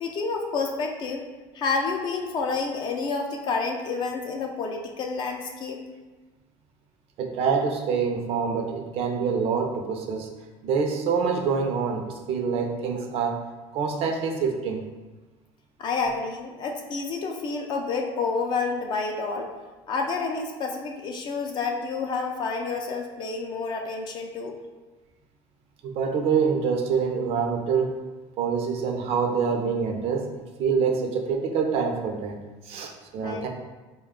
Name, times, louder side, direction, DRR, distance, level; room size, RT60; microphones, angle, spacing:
voice 1, 0.0-1.3 1.5-5.8 15.8-19.5 19.9-24.6 33.2-33.5, left 4 dB, 40° left, 2 dB, 0.4 m, -29 dB
voice 2, 7.2-10.3 10.6-13.4 13.7-14.9 25.8-28.0 28.4-30.3 30.6-32.4 32.6-33.5, right 6 dB, 55° right, 3 dB, 0.5 m, -26 dB
3.8 x 2.2 x 3.6 m, 1.2 s
cardioid pair, 135°, 12 cm